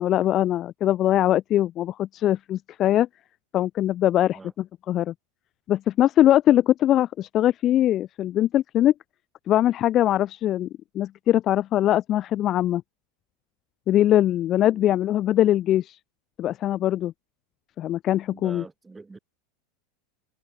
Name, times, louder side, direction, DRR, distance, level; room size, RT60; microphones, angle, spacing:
voice 1, 0.0-3.1 3.5-5.1 5.7-8.9 9.5-10.7 10.9-12.8 13.9-16.0 16.4-17.1 17.8-18.6, left 12 dB, 25° left, 0.4 m, -22 dB
voice 2, 18.3-19.2, right 3 dB, 5° right, 3.1 m, -44 dB
supercardioid pair, 175°, 0 cm